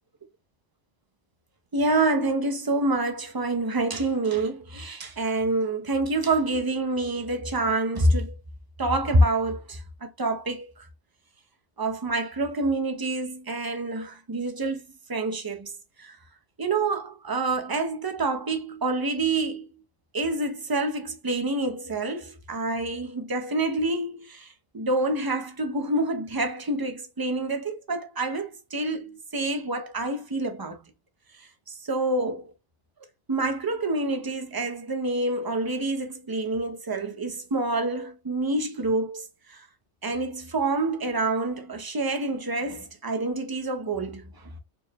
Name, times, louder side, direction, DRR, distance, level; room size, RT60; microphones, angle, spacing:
voice 1, 1.7-8.3 8.8-10.7 11.8-14.8 15.1-15.7 16.0-16.2 16.6-19.7 20.1-24.5 24.7-30.8 31.9-32.5 33.3-39.6 40.0-44.2, right 2 dB, 40° right, 0.3 m, -27 dB
4.2 x 2.1 x 3.3 m
omnidirectional pair, 1.2 m